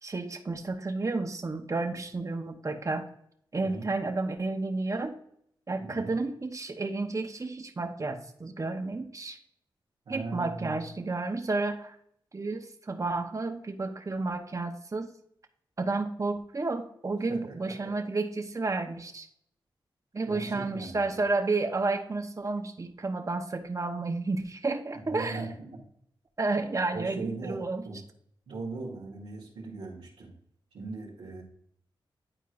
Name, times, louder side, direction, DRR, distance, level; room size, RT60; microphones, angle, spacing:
voice 1, 0.0-3.1 3.5-5.2 5.7-9.4 10.1-11.9 12.3-15.1 15.8-19.3 20.1-25.4 26.4-27.8, right 3 dB, 35° right, 5 dB, 1.0 m, -31 dB
voice 2, 5.8-6.1 10.0-10.8 17.3-17.9 20.3-21.2 24.9-25.8 26.9-28.0 28.5-30.4 30.7-31.4, right 3 dB, 90° right, -7 dB, 1.5 m, -39 dB
10.5 x 4.5 x 2.5 m, 0.69 s
cardioid pair, 70°, 9 cm